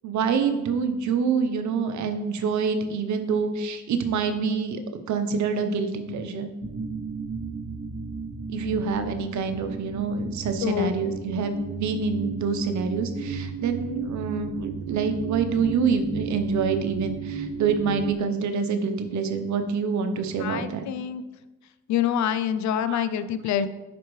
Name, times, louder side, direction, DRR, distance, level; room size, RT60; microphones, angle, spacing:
voice 1, 0.0-4.8 5.1-6.5 8.5-20.8 22.8-23.0, right 5 dB, 70° right, 8 dB, 0.8 m, -26 dB
sound 1, 6.6-18.1, right 5 dB, 35° right, 0.6 m, -34 dB
voice 2, 10.6-10.9 20.4-21.2 21.9-23.7, left 9 dB, 70° left, 12 dB, 0.5 m, -26 dB
10.0 x 4.5 x 3.2 m, 1.1 s
cardioid pair, 90°, 30 cm